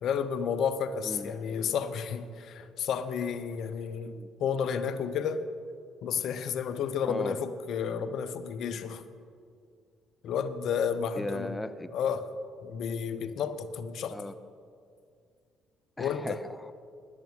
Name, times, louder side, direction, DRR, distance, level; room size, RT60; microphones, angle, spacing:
voice 1, 0.0-5.5 6.0-9.0 10.2-11.6 11.9-12.3 12.6-14.2 16.0-16.4, left 7 dB, 65° left, 0.7 m, -31 dB
voice 2, 7.1-7.4 11.2-11.9 14.1-14.3 16.0-16.7, left 1 dB, 15° left, 0.6 m, -37 dB
10.5 x 9.6 x 6.2 m
hypercardioid pair, 50°, 0 cm